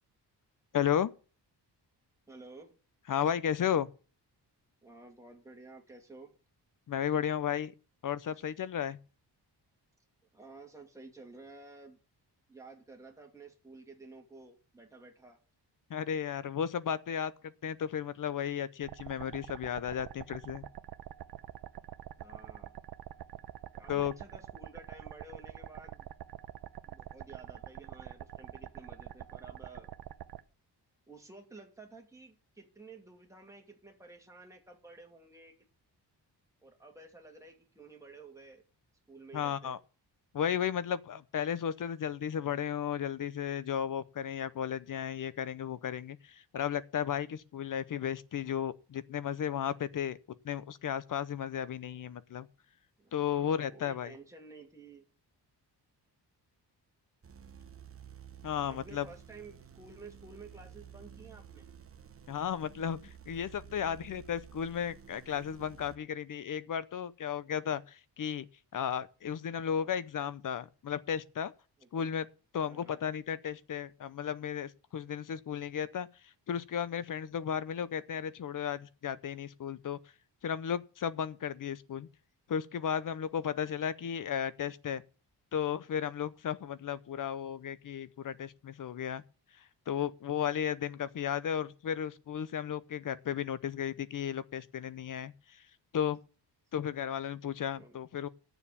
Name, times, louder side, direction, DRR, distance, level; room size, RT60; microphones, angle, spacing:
voice 1, 0.7-1.1 3.1-3.9 6.9-7.7 8.0-9.0 15.9-17.3 17.6-20.6 23.9-24.1 39.3-39.8 40.3-50.2 50.4-52.5 53.1-54.1 58.4-59.1 62.3-63.0 63.3-68.5 68.7-71.5 71.9-72.3 72.5-76.1 76.5-80.0 80.4-82.1 82.5-85.0 85.5-89.2 89.9-95.3 95.9-96.2 96.7-98.3, left 8 dB, 50° left, 0.8 m, -34 dB
voice 2, 2.3-2.7 4.8-6.3 10.3-12.0 12.5-15.4 22.2-22.7 23.7-26.1 26.9-29.9 31.1-35.5 36.6-38.6 39.1-39.8 53.0-55.0 58.6-61.7 71.8-72.1 72.7-73.0 97.8-98.0, right 3 dB, 5° right, 2.6 m, -52 dB
sound 1, 18.8-30.4, right 11 dB, 65° right, 0.8 m, -46 dB
sound 2, 57.2-66.0, right 8 dB, 35° right, 1.1 m, -52 dB
9.6 x 7.1 x 8.5 m
wide cardioid pair, 155°, 41 cm